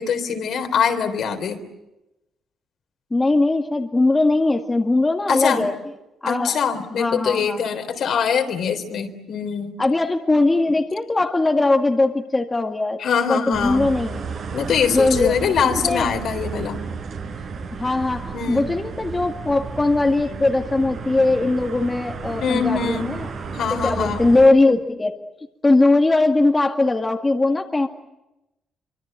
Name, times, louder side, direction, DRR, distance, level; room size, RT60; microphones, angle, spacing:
voice 1, 0.0-1.6 5.3-5.7 6.3-9.7 13.0-13.9 14.5-16.8 18.3-18.8 22.4-23.1 23.5-24.2, left 7 dB, 65° left, 5 dB, 3.8 m, -23 dB
voice 2, 3.1-5.7 6.2-6.6 6.9-7.7 9.8-13.0 13.3-14.2 14.9-15.3 15.8-16.1 17.7-23.2 23.7-25.2 25.6-27.9, left 2 dB, 20° left, 3 dB, 2.1 m, -20 dB
sound 1, 13.5-24.5, right 5 dB, 60° right, 5.0 m, -32 dB
25.0 x 24.5 x 9.1 m, 0.94 s
cardioid pair, 90°, 0 cm